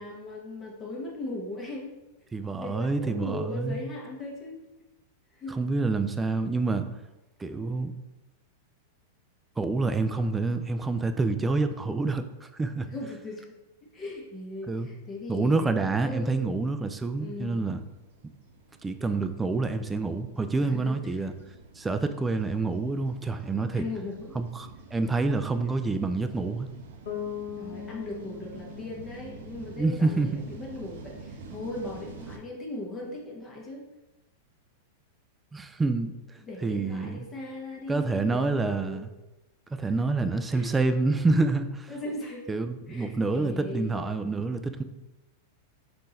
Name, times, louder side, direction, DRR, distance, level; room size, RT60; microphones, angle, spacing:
voice 1, 0.0-1.9 2.6-4.6 5.4-5.6 12.9-13.6 13.9-16.6 17.2-17.6 20.6-21.2 23.7-24.4 27.6-33.8 36.4-39.1 39.8-39.9 40.5-40.7 41.9-42.5 42.9-44.0, left 2 dB, 25° left, -3 dB, 1.2 m, -38 dB
voice 2, 2.3-3.8 5.5-6.9 7.4-7.9 9.6-12.9 14.7-14.9 15.3-17.8 18.8-21.3 21.8-23.8 24.3-26.7 29.8-30.4 35.5-36.2 36.6-37.3 37.9-39.1 39.8-41.9 42.5-44.8, right 3 dB, 15° right, 9 dB, 0.3 m, -27 dB
sound 1, 14.6-32.4, right 4 dB, 70° right, 0.6 m, -48 dB
Bass guitar, 27.1-30.9, left 8 dB, 70° left, 1.2 m, -41 dB
3.7 x 2.5 x 4.1 m, 1.0 s
hypercardioid pair, 105°, 0 cm